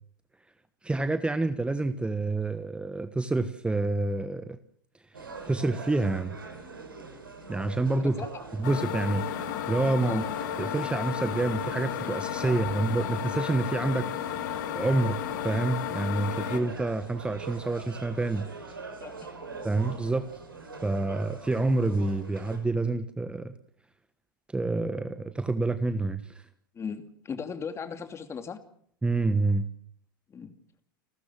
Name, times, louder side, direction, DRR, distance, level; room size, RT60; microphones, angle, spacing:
voice 1, 0.8-4.6 5.5-6.4 7.5-8.1 8.6-9.3 9.7-10.2 10.6-14.1 14.7-15.2 15.4-18.5 19.6-20.2 20.8-23.5 24.5-26.4 29.0-29.6, right 2 dB, 10° right, 12 dB, 1.2 m, -27 dB
sound 1, 5.1-22.6, right 4 dB, 90° right, 5.1 m, -43 dB
voice 2, 8.0-8.3 10.0-10.3 12.4-12.7 19.0-19.3 26.7-28.6 30.3-30.5, left 6 dB, 25° left, 9 dB, 2.7 m, -37 dB
sound 2, 8.6-16.6, left 11 dB, 65° left, 2.3 m, -33 dB
30.0 x 13.0 x 7.6 m, 0.64 s
hypercardioid pair, 90°, 11 cm